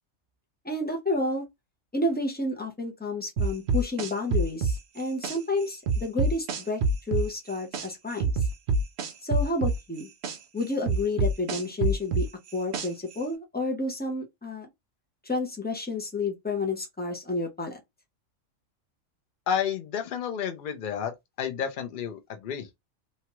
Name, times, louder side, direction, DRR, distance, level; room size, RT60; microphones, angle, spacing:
voice 1, 0.6-1.5 1.9-8.3 9.2-10.1 10.5-12.3 12.5-14.7 15.2-17.8, left 2 dB, 15° left, 0.3 m, -30 dB
sound 1, 3.4-5.4 5.9-7.9 8.2-10.4 10.9-13.1, right 3 dB, 65° right, 0.8 m, -25 dB
voice 2, 19.5-21.1 21.4-22.8, left 8 dB, 50° left, 0.6 m, -31 dB
2.9 x 2.3 x 2.9 m
omnidirectional pair, 1.4 m